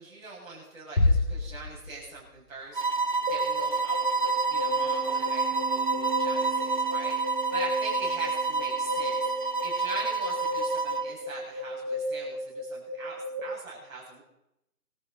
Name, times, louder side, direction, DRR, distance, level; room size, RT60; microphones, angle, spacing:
voice 1, 0.0-14.2, right 3 dB, 55° right, -4 dB, 7.3 m, -42 dB
sound 1, 1.0-2.4, left 2 dB, 85° left, 2.5 m, -26 dB
sound 2, 2.7-11.1, right 4 dB, 30° right, 0.6 m, -28 dB
sound 3, 3.3-13.4, equal, 10° right, 1.2 m, -34 dB
22.5 x 13.5 x 4.1 m, 0.84 s
figure-of-eight pair, 145°, 49 cm